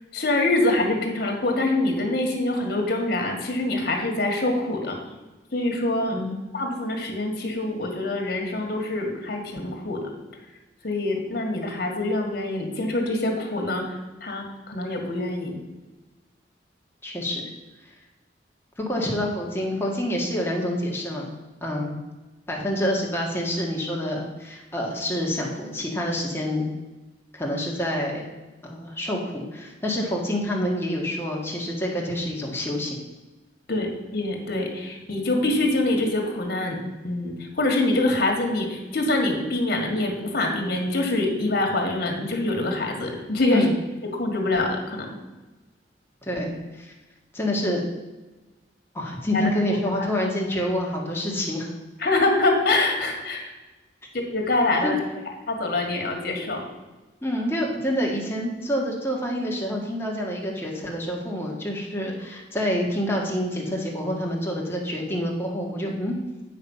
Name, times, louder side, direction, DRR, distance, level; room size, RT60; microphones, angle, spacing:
voice 1, 0.1-5.0 5.5-6.1 6.5-10.1 10.8-15.6 33.7-36.8 37.0-43.7 44.1-45.1 49.3-49.4 50.0-50.1 52.0-53.5 54.1-55.0 55.5-56.6, left 2 dB, 60° left, 3 dB, 1.8 m, -25 dB
voice 2, 17.0-17.5 18.8-21.3 21.6-22.0 22.5-26.7 27.3-28.3 28.6-33.0 43.5-43.7 46.2-46.9 47.3-47.8 48.9-51.7 54.8-55.0 57.2-66.1, left 1 dB, 15° left, -2 dB, 1.6 m, -27 dB
8.4 x 5.9 x 5.6 m, 1.2 s
head